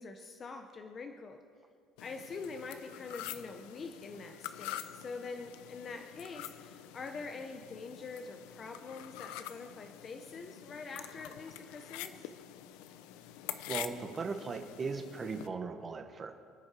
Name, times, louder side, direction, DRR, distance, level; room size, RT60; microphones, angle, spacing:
voice 1, 0.0-1.4 2.0-12.3, left 4 dB, 25° left, 5 dB, 0.8 m, -45 dB
sound 1, 2.0-15.5, left 12 dB, 85° left, 0.7 m, -46 dB
voice 2, 13.7-16.3, right 4 dB, 20° right, 6 dB, 1.1 m, -38 dB
27.5 x 9.5 x 4.9 m, 2.3 s
cardioid pair, 180°, 0 cm